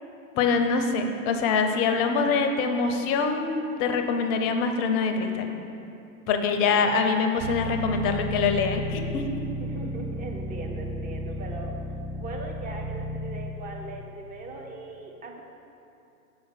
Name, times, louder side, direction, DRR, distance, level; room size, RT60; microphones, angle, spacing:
voice 1, 0.4-5.5 6.3-9.3, left 5 dB, 30° left, 6 dB, 0.6 m, -24 dB
sound 1, 7.4-13.5, equal, 40° right, 1.2 m, -33 dB
voice 2, 9.6-15.4, right 3 dB, 20° right, 1 dB, 0.8 m, -40 dB
5.8 x 5.4 x 5.8 m, 2.8 s
figure-of-eight pair, 100°, 44 cm